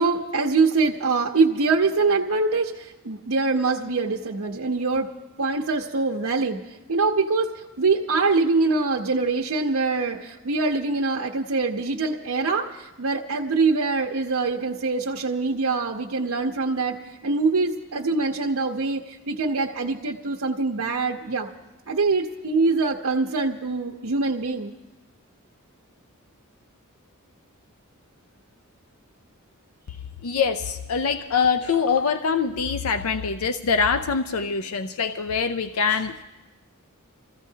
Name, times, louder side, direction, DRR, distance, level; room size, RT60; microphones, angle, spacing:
voice 1, 0.0-5.1 5.4-6.6 6.9-7.5 7.8-17.0 17.2-21.5 21.9-24.7, right 3 dB, 70° right, -1 dB, 0.8 m, -24 dB
voice 2, 30.2-36.2, left 5 dB, 75° left, 9 dB, 0.5 m, -24 dB
26.5 x 15.0 x 2.8 m, 1.1 s
head